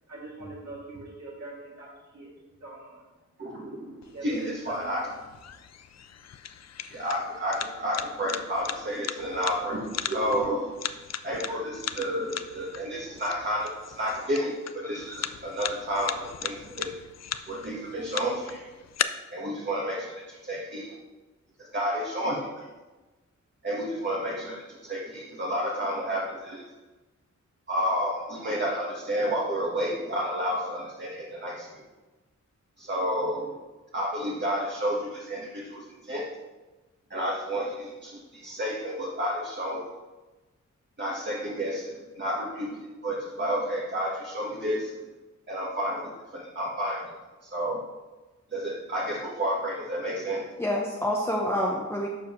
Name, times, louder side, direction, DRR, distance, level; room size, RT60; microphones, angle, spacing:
voice 1, 0.1-2.3 2.6-3.1 3.6-3.8 4.1-4.3 4.7-5.0, right 2 dB, 65° right, -6 dB, 2.7 m, -43 dB
voice 2, 3.4-5.0 6.9-10.8 11.2-17.0 17.5-18.7 19.3-21.0 21.6-22.7 23.6-26.6 27.7-31.8 32.8-33.5 33.9-36.2 37.1-39.8 41.0-45.0 45.5-47.1 47.4-47.8 48.5-50.5, equal, 35° right, -5 dB, 1.4 m, -31 dB
sound 1, 4.0-19.0, left 9 dB, 60° left, 0.5 m, -38 dB
voice 3, 14.8-15.2 50.6-52.1, left 1 dB, 10° left, -2 dB, 0.8 m, -28 dB
11.5 x 7.1 x 3.1 m, 1.2 s
wide cardioid pair, 155°, 30 cm